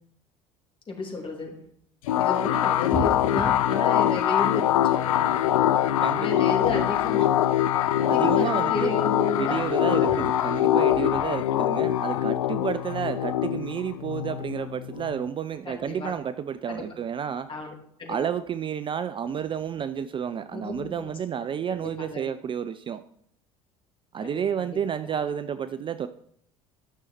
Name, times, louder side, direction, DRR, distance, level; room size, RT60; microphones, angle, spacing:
voice 1, 0.9-1.6 2.2-7.3 8.0-10.2 10.9-11.0 15.6-16.1 16.7-16.8 17.5-17.7 18.0-18.2 20.5-21.1 21.7-22.2 24.2-24.8 25.0-25.2, left 3 dB, 30° left, 1 dB, 2.7 m, -32 dB
sound 1, 2.1-15.3, left 12 dB, 75° left, 0.4 m, -23 dB
voice 2, 6.0-6.4 8.1-8.9 9.4-17.5 18.1-23.0 24.1-26.1, right 8 dB, 30° right, 13 dB, 0.4 m, -31 dB
12.5 x 6.2 x 4.3 m, 0.67 s
figure-of-eight pair, 65°, 17 cm